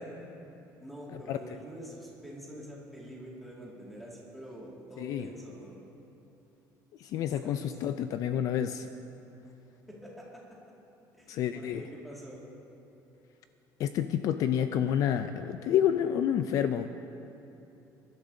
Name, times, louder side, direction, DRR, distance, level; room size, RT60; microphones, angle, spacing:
voice 1, 0.8-5.8 7.3-7.8 9.9-10.4 11.1-12.4, equal, ahead, -5 dB, 2.1 m, -46 dB
voice 2, 7.0-8.9 11.3-11.8 13.8-16.9, left 9 dB, 50° left, 9 dB, 0.4 m, -29 dB
25.5 x 12.0 x 2.7 m, 2.9 s
cardioid pair, 170°, 7 cm